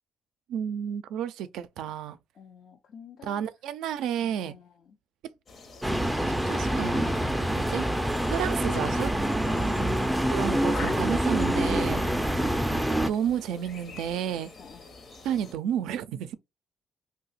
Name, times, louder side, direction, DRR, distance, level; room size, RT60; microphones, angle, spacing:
voice 1, 0.5-2.2 3.2-4.5 6.4-7.8 8.3-9.1 10.3-12.0 13.0-14.5 15.2-16.3, right 9 dB, 90° right, 0.4 m, -31 dB
voice 2, 2.3-3.4 4.2-5.0 9.5-10.0 14.6-14.9, left 6 dB, 70° left, 0.5 m, -48 dB
sound 1, 5.5-15.5, left 3 dB, 50° left, 0.9 m, -45 dB
sound 2, 5.8-13.1, right 1 dB, 5° right, 0.4 m, -26 dB
2.8 x 2.2 x 4.0 m
cardioid pair, 90°, 0 cm